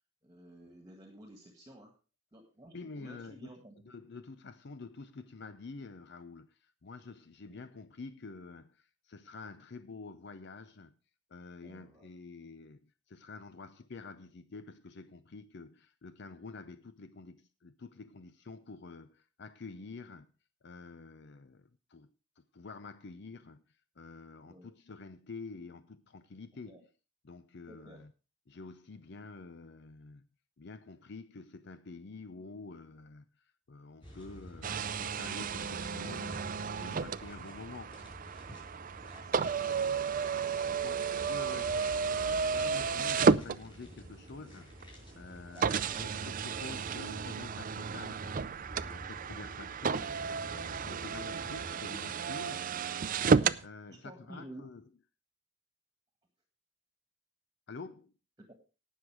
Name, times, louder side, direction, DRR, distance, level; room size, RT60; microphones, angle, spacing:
voice 1, 0.2-1.9 2.3-3.7 7.5-7.6 11.6-12.1 24.5-24.7 26.7-26.8 27.7-28.1 37.3-37.6 39.1-39.7 40.3-40.8 45.5-46.0 53.9-54.7 58.4-58.5, right 1 dB, 20° right, 1.8 m, -52 dB
voice 2, 2.7-3.5 3.9-10.9 11.3-20.3 20.6-22.1 22.4-23.6 24.0-26.8 27.2-28.1 28.5-30.3 30.6-38.0 40.8-44.7 45.1-52.7 53.6-54.8 57.7-58.1, left 3 dB, 60° left, 0.6 m, -48 dB
sound 1, 34.0-51.7, equal, 25° left, 6.1 m, -50 dB
sound 2, 34.6-44.1 44.8-44.9 45.6-53.6, right 5 dB, 45° right, 0.5 m, -32 dB
18.0 x 6.5 x 4.8 m
head